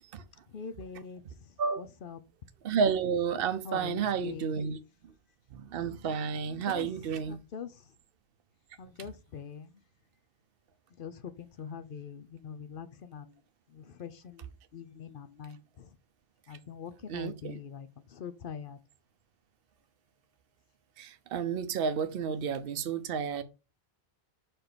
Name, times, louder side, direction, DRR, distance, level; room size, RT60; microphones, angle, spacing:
voice 1, 0.5-2.2 3.6-4.5 6.5-6.9 7.2-8.0 8.8-9.8 11.0-13.4 13.7-16.0 16.5-18.8, left 7 dB, 60° left, 0.8 m, -44 dB
voice 2, 2.6-4.8 5.5-7.4 17.1-17.6 21.0-23.4, right 6 dB, 65° right, 0.9 m, -31 dB
5.8 x 4.4 x 5.1 m
omnidirectional pair, 1.0 m